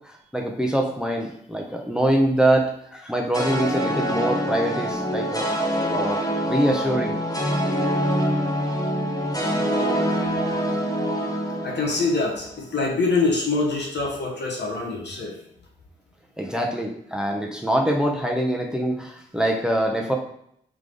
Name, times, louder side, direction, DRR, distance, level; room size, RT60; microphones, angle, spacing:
voice 1, 0.1-5.5 5.9-7.2 16.4-20.1, right 1 dB, 5° right, 1 dB, 0.8 m, -24 dB
sound 1, 3.3-12.7, equal, 20° left, 1.1 m, -25 dB
voice 2, 11.6-15.3, left 3 dB, 55° left, -1 dB, 1.3 m, -24 dB
3.7 x 3.6 x 3.4 m, 0.69 s
supercardioid pair, 40°, 21 cm